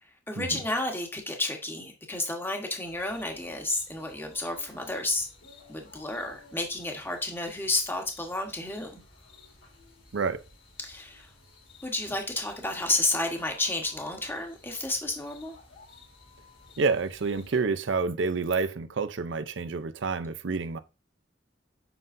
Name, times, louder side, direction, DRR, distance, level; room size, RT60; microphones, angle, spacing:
voice 1, 0.0-5.3 5.7-9.0 10.8-11.3 11.8-15.6, left 2 dB, 10° left, 1.2 m, -31 dB
sound 1, 2.8-17.6, left 3 dB, 85° left, 3.2 m, -55 dB
voice 2, 10.1-10.4 16.8-20.8, right 4 dB, 75° right, 0.6 m, -28 dB
7.8 x 5.4 x 2.6 m
head